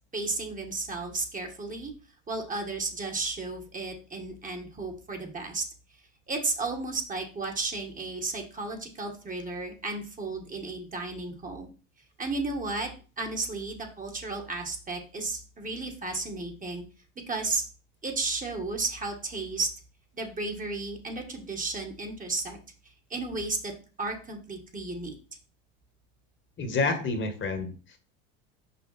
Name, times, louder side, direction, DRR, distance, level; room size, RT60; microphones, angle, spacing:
voice 1, 0.1-1.9 2.3-5.6 6.3-11.7 12.2-12.9 13.2-16.8 17.3-17.6 18.0-19.7 20.1-22.6 23.1-23.7 24.0-25.2, right 3 dB, 25° right, 3 dB, 1.7 m, -33 dB
voice 2, 26.6-28.0, left 3 dB, 35° left, 7 dB, 1.5 m, -29 dB
5.8 x 4.9 x 4.2 m, 0.37 s
supercardioid pair, 90°, 32 cm